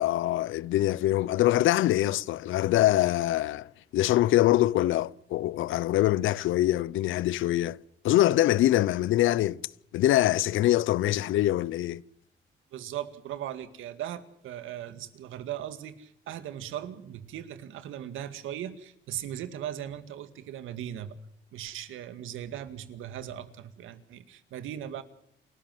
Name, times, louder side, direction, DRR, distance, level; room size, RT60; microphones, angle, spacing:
voice 1, 0.0-7.8 8.0-9.6 9.9-12.0, left 14 dB, 85° left, 0.8 m, -24 dB
voice 2, 12.7-21.2 21.5-25.0, right 11 dB, 85° right, 2.1 m, -38 dB
29.0 x 13.5 x 7.8 m
cardioid pair, 90°, 20 cm